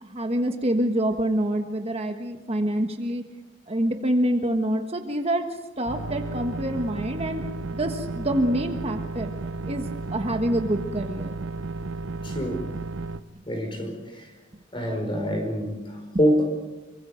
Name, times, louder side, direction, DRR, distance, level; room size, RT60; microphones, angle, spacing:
voice 1, 0.0-3.2 3.7-5.4 5.8-7.4 7.7-9.3 9.7-11.3, right 1 dB, 30° right, 5 dB, 1.4 m, -26 dB
sound 1, 5.9-13.2, right 3 dB, 75° right, 0.7 m, -33 dB
voice 2, 12.2-12.7 13.4-14.3 14.7-16.5, equal, 25° left, 4 dB, 4.9 m, -26 dB
27.0 x 24.5 x 5.1 m, 1.1 s
head